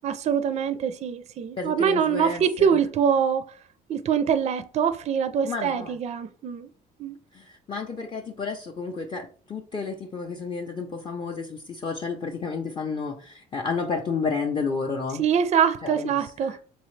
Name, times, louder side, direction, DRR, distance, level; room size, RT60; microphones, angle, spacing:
voice 1, 0.0-3.4 3.9-6.7 7.0-7.2 15.2-16.6, right 7 dB, 40° right, 0.4 m, -24 dB
voice 2, 1.6-2.7 5.5-6.0 7.3-15.2 15.8-16.6, left 4 dB, 30° left, 0.5 m, -31 dB
3.9 x 3.7 x 3.1 m
cardioid pair, 110°, 17 cm